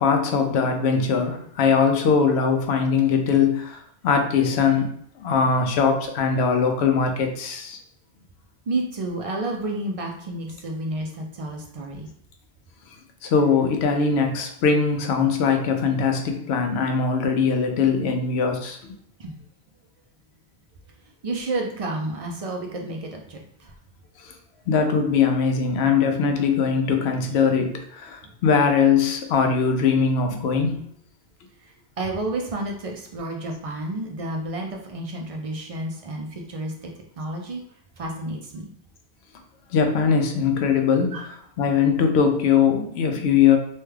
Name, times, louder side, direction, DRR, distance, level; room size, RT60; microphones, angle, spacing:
voice 1, 0.0-7.8 13.2-18.8 24.2-24.3 24.7-30.8 39.7-43.6, left 6 dB, 75° left, 5 dB, 0.8 m, -21 dB
voice 2, 8.7-12.1 19.2-19.4 21.2-23.7 28.2-28.3 31.6-36.7 37.2-37.6 38.0-38.7 41.1-41.3, right 2 dB, 55° right, 1 dB, 0.4 m, -30 dB
3.1 x 2.2 x 3.2 m, 0.65 s
omnidirectional pair, 1.1 m